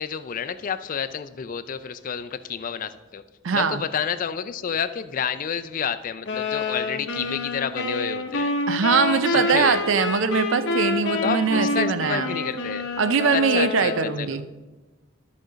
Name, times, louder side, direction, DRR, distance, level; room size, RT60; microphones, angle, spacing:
voice 1, 0.0-3.2 3.5-8.5 9.3-9.8 11.2-12.8 13.3-14.4, left 7 dB, 40° left, 12 dB, 0.4 m, -29 dB
voice 2, 3.4-3.8 8.7-12.4 13.0-14.4, right 5 dB, 65° right, 13 dB, 0.4 m, -22 dB
sound 1, 6.3-14.3, left 3 dB, 60° left, 0.8 m, -28 dB
13.0 x 5.1 x 3.9 m, 1.2 s
head